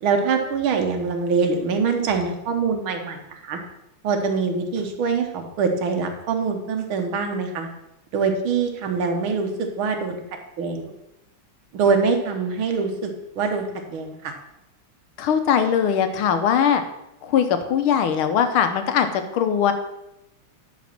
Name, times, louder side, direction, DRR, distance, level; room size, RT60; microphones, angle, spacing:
voice 1, 0.0-3.6 4.0-7.7 8.1-9.5 9.8-10.2 10.6-10.9 11.7-13.1 13.4-14.3, right 5 dB, 75° right, 4 dB, 1.9 m, -24 dB
voice 2, 15.2-16.8 17.2-17.4 17.7-19.1 19.3-19.7, left 8 dB, 85° left, 8 dB, 1.7 m, -20 dB
10.5 x 4.2 x 5.9 m, 0.89 s
omnidirectional pair, 2.3 m